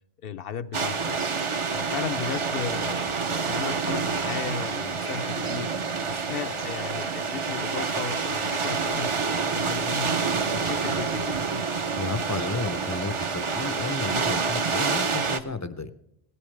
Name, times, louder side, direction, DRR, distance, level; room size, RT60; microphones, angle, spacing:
voice 1, 0.2-1.2 1.7-10.2 10.5-11.4, left 7 dB, 65° left, 11 dB, 0.8 m, -35 dB
sound 1, 0.7-15.4, right 5 dB, 35° right, 0.6 m, -28 dB
voice 2, 11.9-15.9, left 3 dB, 25° left, 12 dB, 0.4 m, -32 dB
17.5 x 12.5 x 3.3 m, 0.81 s
omnidirectional pair, 1.1 m